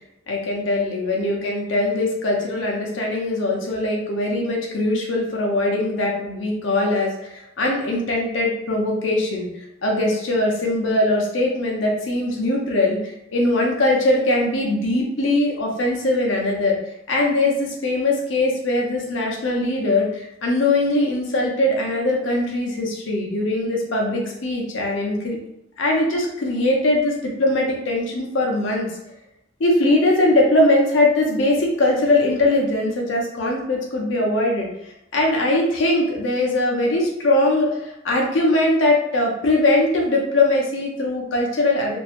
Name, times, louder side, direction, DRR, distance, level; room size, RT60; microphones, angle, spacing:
voice 1, 0.3-9.5 9.8-16.8 17.1-25.4 25.8-28.9 29.6-34.7 35.1-42.0, left 2 dB, 85° left, -1 dB, 0.6 m, -21 dB
2.6 x 2.0 x 2.9 m, 0.85 s
head